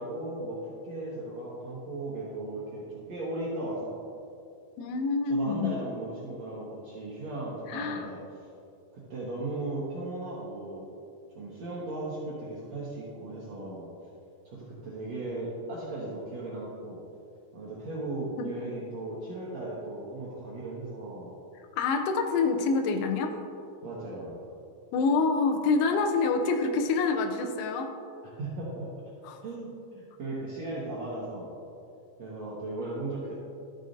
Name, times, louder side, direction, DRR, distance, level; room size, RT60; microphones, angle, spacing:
voice 1, 0.0-4.0 5.3-8.2 8.9-10.9 11.3-13.9 14.4-17.0 17.5-21.3 23.8-24.5 28.4-28.9 29.4-31.5 32.2-33.4, right 2 dB, 90° right, -7 dB, 1.5 m, -37 dB
voice 2, 4.8-5.7 7.7-8.1 18.4-18.5 21.6-23.3 24.9-28.0 29.2-29.4, left 4 dB, 80° left, 4 dB, 2.5 m, -27 dB
13.0 x 6.5 x 2.6 m, 2.5 s
omnidirectional pair, 5.0 m